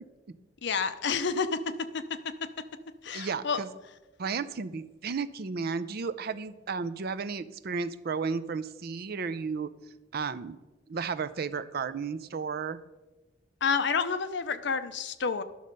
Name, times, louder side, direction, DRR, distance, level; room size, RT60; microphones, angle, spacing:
voice 1, 0.6-1.6 1.9-2.0 3.0-3.6 13.6-15.4, left 5 dB, 60° left, 11 dB, 0.6 m, -29 dB
voice 2, 3.1-3.7 4.2-9.7 10.1-10.6 10.9-12.8, right 5 dB, 50° right, 14 dB, 0.5 m, -33 dB
11.0 x 6.4 x 5.3 m, 1.1 s
head